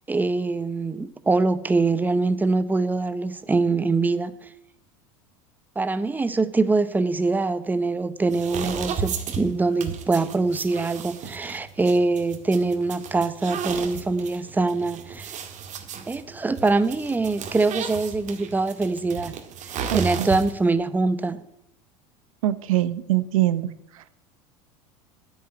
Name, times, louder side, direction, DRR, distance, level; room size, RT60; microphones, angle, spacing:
voice 1, 0.1-4.5 5.8-15.3 16.1-19.4 19.9-21.4, right 3 dB, 10° right, 13 dB, 0.7 m, -23 dB
sound 1, 8.3-20.7, right 7 dB, 45° right, 2.0 m, -34 dB
voice 2, 19.9-20.3 22.4-23.7 23.9-24.0, right 14 dB, 80° right, 15 dB, 0.8 m, -23 dB
9.8 x 7.2 x 8.8 m, 0.80 s
hypercardioid pair, 90°, 17 cm